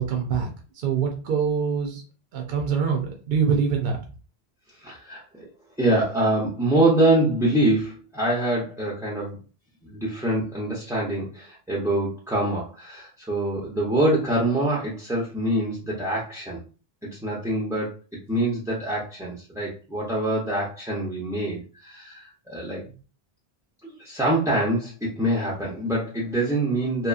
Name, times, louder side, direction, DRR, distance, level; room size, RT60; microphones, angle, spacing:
voice 1, 0.0-2.0 2.3-4.0, right 6 dB, 65° right, 2 dB, 0.7 m, -24 dB
voice 2, 4.8-5.2 5.8-9.4 9.8-16.6 17.0-17.9 18.3-22.8 23.8-27.1, right 1 dB, 5° right, -6 dB, 0.4 m, -25 dB
2.8 x 2.2 x 2.3 m, 0.35 s
omnidirectional pair, 1.1 m